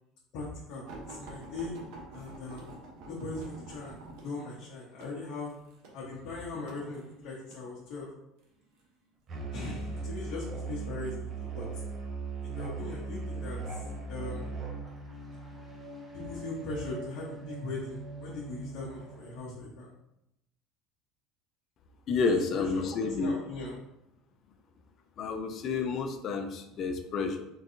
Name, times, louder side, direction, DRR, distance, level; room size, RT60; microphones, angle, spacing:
voice 1, 0.3-1.7 2.1-2.7 3.1-4.0 4.2-5.5 5.9-8.1 9.5-11.6 12.4-13.8 14.1-14.5 16.1-19.9 22.2-23.7, left 3 dB, 65° left, -6 dB, 0.9 m, -39 dB
sound 1, 0.8-7.7 8.4-8.9 9.8-10.5 11.2-11.4 11.8-11.9, right 2 dB, 70° right, 0.8 m, -48 dB
Musical instrument, 9.3-14.9, right 4 dB, 40° right, 0.6 m, -37 dB
sound 2, 13.6-19.4, right 2 dB, 5° right, 0.8 m, -45 dB
voice 2, 22.1-23.3 25.2-27.4, left 4 dB, 45° left, 7 dB, 0.5 m, -30 dB
3.8 x 2.7 x 2.7 m, 0.84 s
supercardioid pair, 110°, 0 cm